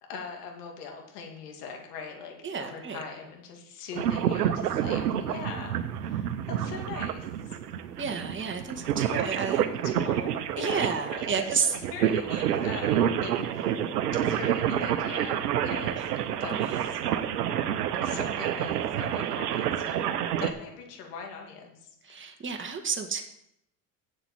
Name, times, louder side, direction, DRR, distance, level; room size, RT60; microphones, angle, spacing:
voice 1, 0.1-7.6 9.0-13.8 14.2-17.2 18.0-22.4, left 5 dB, 80° left, 2 dB, 2.6 m, -42 dB
voice 2, 2.4-3.0 8.0-9.6 10.6-11.7 16.5-16.8 22.0-23.2, right 5 dB, 25° right, 4 dB, 1.9 m, -31 dB
sound 1, 3.9-20.5, right 10 dB, 85° right, 0.9 m, -28 dB
8.0 x 7.5 x 8.1 m, 0.77 s
hypercardioid pair, 75°, 46 cm